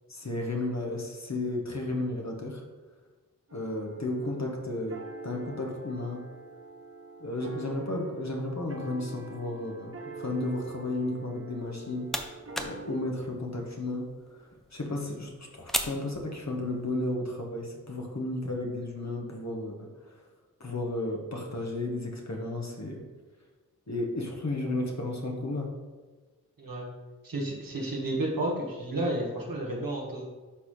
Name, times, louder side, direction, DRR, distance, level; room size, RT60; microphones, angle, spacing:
voice 1, 0.1-2.6 3.5-5.0 5.2-6.2 7.2-12.1 12.6-14.1 14.7-19.9 20.6-23.0 23.9-25.7, left 2 dB, 50° left, 0 dB, 1.5 m, -33 dB
sound 1, 3.5-13.0, right 2 dB, 40° right, 0.8 m, -45 dB
sound 2, 11.6-16.9, equal, ahead, 0.7 m, -39 dB
voice 2, 26.6-26.9 27.2-30.3, right 1 dB, 75° right, -2 dB, 1.8 m, -31 dB
11.5 x 4.2 x 3.3 m, 1.3 s
wide cardioid pair, 50°, 34 cm